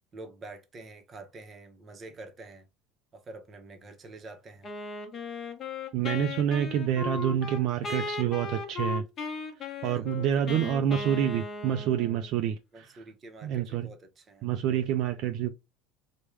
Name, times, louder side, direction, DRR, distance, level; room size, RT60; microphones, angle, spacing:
voice 1, 0.1-2.6 3.1-4.7 9.8-10.6 12.7-14.5, right 2 dB, 30° right, 0.7 m, -47 dB
Wind instrument woodwind instrument, 4.6-12.3, left 4 dB, 30° left, 0.8 m, -36 dB
voice 2, 5.9-9.0 9.8-13.0 13.4-13.9 14.4-15.5, right 10 dB, 55° right, 0.3 m, -28 dB
3.4 x 2.1 x 3.1 m
supercardioid pair, 135°, 0 cm